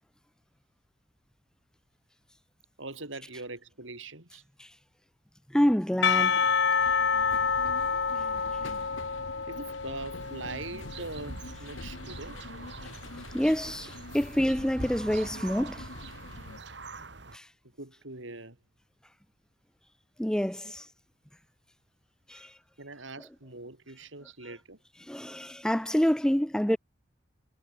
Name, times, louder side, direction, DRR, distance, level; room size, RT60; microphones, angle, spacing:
voice 1, 2.8-4.4 9.5-12.4 17.8-18.6 20.6-20.7 22.3-22.4 22.8-24.8, right 3 dB, 80° right, 3.9 m, -42 dB
voice 2, 5.5-6.4 13.3-15.9 17.3-17.5 20.2-20.9 22.3-22.5 25.1-26.8, equal, 5° left, 0.5 m, -27 dB
Percussion / Church bell, 6.0-11.3, left 6 dB, 60° left, 1.1 m, -28 dB
sound 1, 6.8-16.6, left 2 dB, 90° left, 1.4 m, -45 dB
sound 2, 10.2-17.4, right 3 dB, 60° right, 2.3 m, -44 dB
head